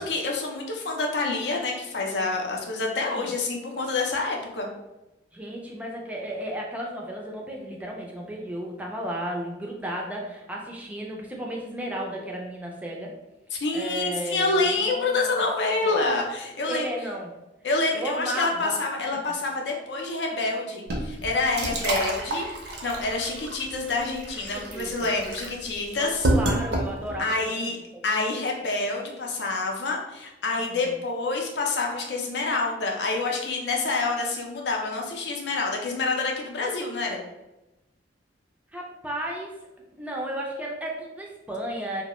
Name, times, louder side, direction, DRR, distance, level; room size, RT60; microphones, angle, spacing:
voice 1, 0.0-4.7 13.5-16.9 17.6-22.5 22.8-26.3 27.2-27.8 28.0-37.2, left 3 dB, 65° left, 0 dB, 0.5 m, -27 dB
voice 2, 5.3-13.1 13.7-15.4 15.8-16.0 16.7-17.3 17.9-18.8 24.5-25.1 26.0-27.7 30.6-30.9 38.7-39.5 40.0-42.0, right 1 dB, 10° right, -1 dB, 0.4 m, -34 dB
sound 1, 20.9-27.3, right 1 dB, 65° right, 0.5 m, -29 dB
2.2 x 2.0 x 2.9 m, 0.99 s
head